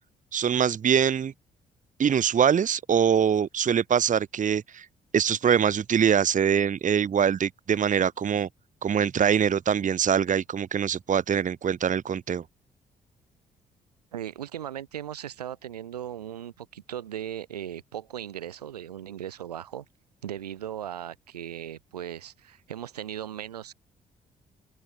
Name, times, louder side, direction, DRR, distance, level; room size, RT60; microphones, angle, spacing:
voice 1, 0.3-1.3 2.0-4.9 5.1-8.5 8.8-12.4, right 8 dB, 40° right, 1.0 m, -23 dB
voice 2, 14.1-19.9 20.2-23.7, right 10 dB, 85° right, 2.7 m, -37 dB
open air
figure-of-eight pair, 45°, 20 cm